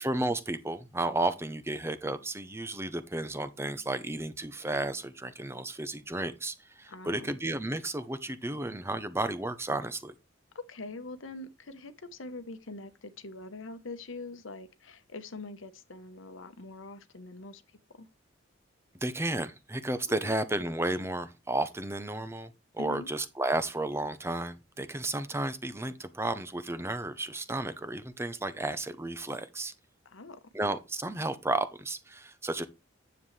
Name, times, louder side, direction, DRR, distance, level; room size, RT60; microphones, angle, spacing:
voice 1, 0.0-10.1 19.0-29.7 30.5-32.7, right 2 dB, 15° right, 0.7 m, -33 dB
voice 2, 6.9-7.4 10.5-17.6 17.9-18.1 20.2-20.4 22.8-23.1 30.0-30.4, left 2 dB, 80° left, 1.1 m, -43 dB
9.9 x 7.2 x 3.3 m
head